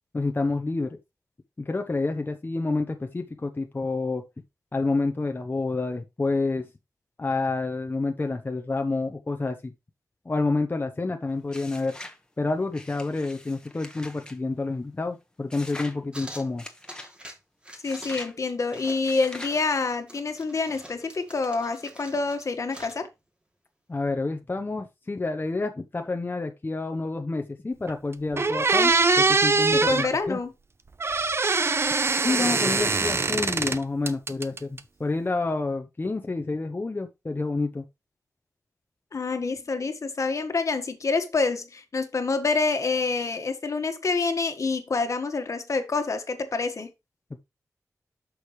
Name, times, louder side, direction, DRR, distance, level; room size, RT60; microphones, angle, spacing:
voice 1, 0.1-1.0 1.6-4.2 4.7-6.7 7.2-9.7 10.2-12.0 12.4-16.6 23.9-30.4 32.2-37.8 47.3-47.4, left 3 dB, 35° left, 0.9 m, -28 dB
sound 1, 11.5-12.2 12.7-14.4 15.5-16.0 16.6-17.1 17.8-18.3 19.0-19.6, left 1 dB, 15° left, 1.5 m, -42 dB
sound 2, 16.1-17.4 17.6-18.2 18.5-23.0, equal, 20° right, 2.7 m, -45 dB
voice 2, 17.8-23.1 29.7-30.5 39.1-46.9, left 4 dB, 65° left, 1.6 m, -27 dB
sound 3, 27.9-28.0 28.4-30.1 31.0-33.8 34.1-34.8, right 3 dB, 45° right, 0.8 m, -22 dB
8.2 x 6.4 x 3.2 m
wide cardioid pair, 65°, 6 cm